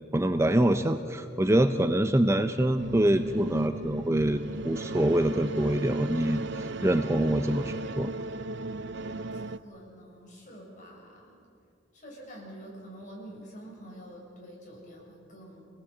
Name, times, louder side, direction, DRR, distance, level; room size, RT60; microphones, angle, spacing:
voice 1, 0.1-8.1, right 1 dB, 15° right, 8 dB, 0.6 m, -25 dB
sound 1, 2.8-9.6, right 3 dB, 65° right, 0.7 m, -36 dB
voice 2, 9.3-11.4 12.0-15.7, equal, 40° left, -2 dB, 7.5 m, -47 dB
27.5 x 19.0 x 8.2 m, 2.5 s
head